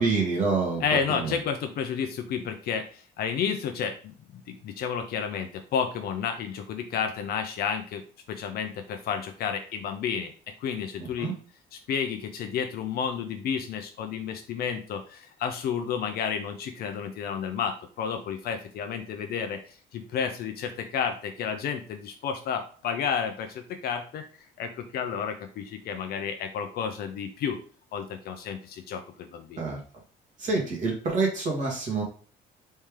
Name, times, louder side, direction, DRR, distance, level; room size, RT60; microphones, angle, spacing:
voice 1, 0.0-0.8 1.1-1.3 11.2-11.3 29.6-29.8 30.4-32.0, right 4 dB, 45° right, -1 dB, 2.0 m, -26 dB
voice 2, 0.8-4.1 4.5-8.0 8.3-10.3 10.6-11.3 11.7-24.2 24.6-27.6 27.9-29.6, left 7 dB, 65° left, 6 dB, 0.6 m, -31 dB
4.3 x 3.3 x 3.6 m, 0.41 s
cardioid pair, 110°, 17 cm